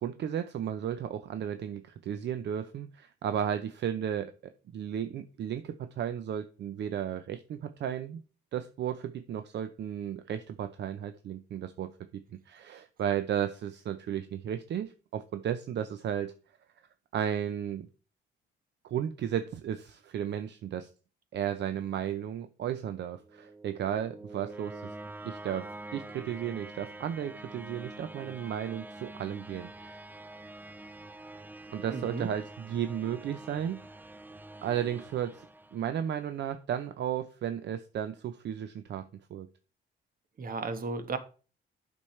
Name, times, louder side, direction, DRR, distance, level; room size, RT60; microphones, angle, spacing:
voice 1, 0.0-8.2 8.5-16.3 17.1-17.9 18.8-20.9 21.3-24.9 25.2-30.0 31.7-34.0 34.6-35.4 35.7-39.5, right 9 dB, 60° right, 0.6 m, -34 dB
sound 1, 23.2-36.2, right 2 dB, 10° right, 0.4 m, -46 dB
voice 2, 31.9-32.3 40.4-41.2, right 4 dB, 45° right, 1.2 m, -34 dB
8.7 x 6.1 x 3.2 m
cardioid pair, 90°, 20 cm